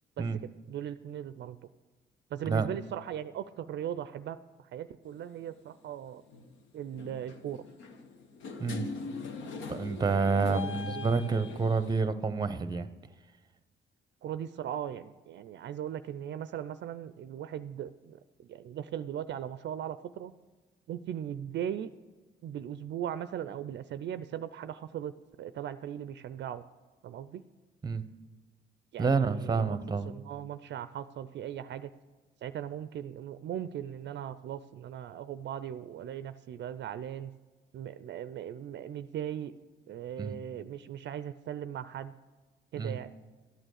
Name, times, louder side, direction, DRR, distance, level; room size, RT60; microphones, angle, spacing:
voice 1, 0.2-1.6 2.3-6.2 6.7-7.6 10.2-11.4 14.2-20.3 20.9-21.9 22.4-26.6 27.0-27.4 28.9-29.8 30.1-31.9 32.4-37.3 37.7-39.5 39.9-42.1 42.7-43.1, right 10 dB, 60° right, 13 dB, 0.4 m, -39 dB
sound 1, 5.1-5.3 6.3-6.5 6.9-12.0, left 4 dB, 75° left, 1.1 m, -41 dB
voice 2, 9.7-12.9 27.8-28.0 29.0-30.1 40.2-40.4 42.8-43.0, right 4 dB, 20° right, 13 dB, 0.7 m, -28 dB
12.5 x 8.9 x 6.5 m, 1.3 s
cardioid pair, 90°, 20 cm